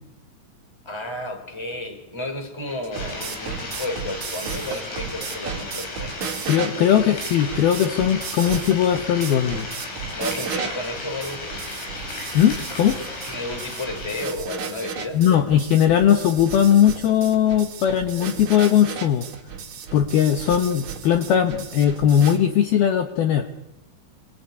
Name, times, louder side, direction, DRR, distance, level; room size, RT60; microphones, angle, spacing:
voice 1, 0.8-6.2 6.6-6.7 10.1-11.6 13.3-15.2, left 2 dB, 5° left, 7 dB, 3.0 m, -32 dB
sound 1, 2.7-22.4, right 6 dB, 45° right, 3.5 m, -34 dB
sound 2, 2.9-14.3, left 2 dB, 90° left, 10.0 m, -35 dB
voice 2, 6.5-9.7 12.3-13.0 15.1-19.3 19.9-23.5, left 9 dB, 65° left, 8 dB, 2.6 m, -19 dB
26.5 x 22.0 x 9.6 m, 0.91 s
omnidirectional pair, 5.6 m